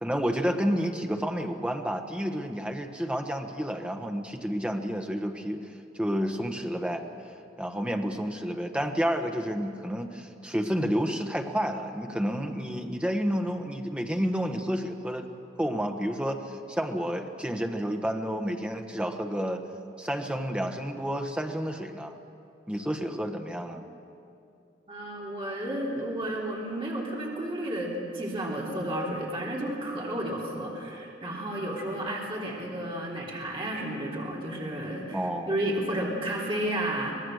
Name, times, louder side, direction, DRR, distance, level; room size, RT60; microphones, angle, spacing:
voice 1, 0.0-7.0 7.6-15.3 15.6-19.6 20.0-22.2 22.7-23.8 35.1-35.6, equal, 5° right, 4 dB, 1.2 m, -30 dB
voice 2, 24.9-37.1, right 1 dB, 30° right, -4 dB, 3.2 m, -32 dB
24.5 x 19.0 x 6.5 m, 2.6 s
head